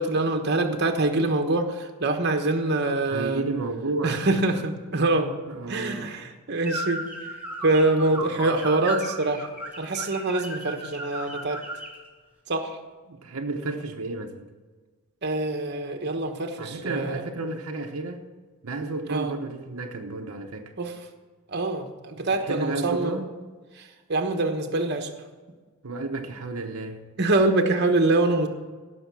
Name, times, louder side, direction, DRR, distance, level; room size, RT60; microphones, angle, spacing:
voice 1, 0.0-3.4 4.0-5.3 5.7-7.0 7.6-9.5 9.8-11.6 12.5-12.8 15.2-17.2 19.1-19.3 20.8-20.9 21.5-23.2 23.8-25.1 27.2-28.5, right 2 dB, 50° right, 5 dB, 1.2 m, -25 dB
voice 2, 3.1-4.3 5.5-6.2 8.1-8.5 13.1-14.5 16.6-18.3 18.6-20.7 22.4-23.4 25.8-27.0, right 3 dB, 80° right, 3 dB, 1.0 m, -32 dB
sound 1, 6.6-12.0, right 1 dB, 5° right, 2.3 m, -35 dB
16.5 x 6.4 x 6.3 m, 1.4 s
head